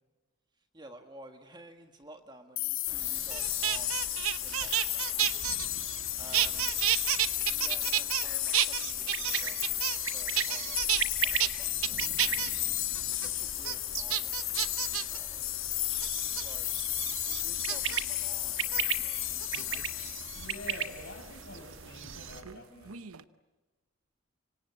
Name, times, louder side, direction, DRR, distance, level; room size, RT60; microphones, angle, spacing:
voice 1, 0.6-4.0 4.4-5.2 6.2-6.7 7.5-12.4 12.9-16.7 17.2-19.2, right 1 dB, 20° right, 5 dB, 1.6 m, -53 dB
sound 1, 2.6-21.2, left 16 dB, 70° left, 1.0 m, -33 dB
sound 2, 2.9-22.4, right 7 dB, 60° right, 1.6 m, -39 dB
sound 3, 3.3-6.1 6.3-8.3 8.5-10.1 10.4-11.0 11.4-11.5 11.8-12.5 12.9-13.3 13.6-13.7 14.1-15.2 16.0-16.4 17.7-18.0 18.6-18.8 19.4-20.0 21.4-22.6 22.8-23.2, right 12 dB, 90° right, 0.9 m, -30 dB
voice 2, 20.3-23.0, left 2 dB, 55° left, 5 dB, 5.7 m, -46 dB
26.0 x 25.5 x 8.6 m, 1.3 s
head